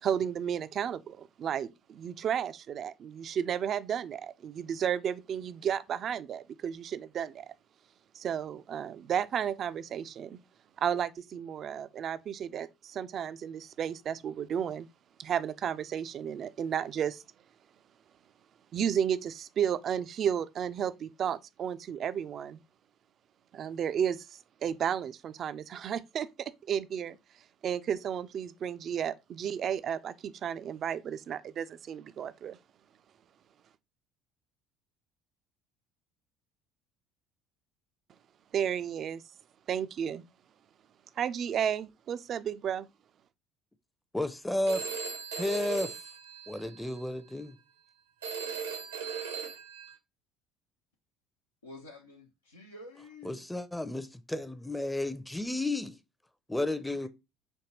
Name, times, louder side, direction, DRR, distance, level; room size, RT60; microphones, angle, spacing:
voice 1, 0.0-7.5 8.1-10.4 10.8-14.9 15.2-17.2 18.7-22.6 23.5-27.2 27.6-32.6 38.5-39.2 39.7-40.2 41.2-42.9, right 8 dB, 45° right, 0.3 m, -33 dB
voice 2, 44.1-44.8 45.3-46.0 46.5-47.6 53.2-56.0 56.5-57.1, left 1 dB, 5° left, 0.5 m, -32 dB
Telephone, 44.7-47.0 48.2-49.9, right 6 dB, 85° right, 0.8 m, -38 dB
voice 3, 51.6-53.4 57.0-57.1, left 2 dB, 90° left, 0.6 m, -49 dB
5.2 x 2.7 x 2.9 m
figure-of-eight pair, 60°, 0 cm